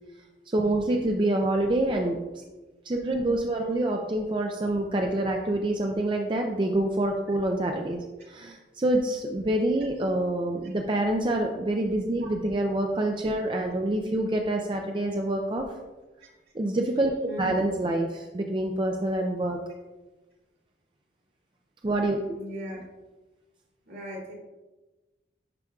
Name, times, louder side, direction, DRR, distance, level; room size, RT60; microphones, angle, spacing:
voice 1, 0.5-2.2 2.8-15.7 16.5-17.1 17.4-19.6 21.8-22.4, right 1 dB, 25° right, 2 dB, 0.4 m, -26 dB
voice 2, 17.3-17.7 22.3-22.8 23.9-24.3, equal, 70° right, -3 dB, 2.3 m, -38 dB
10.5 x 5.0 x 2.3 m, 1.2 s
head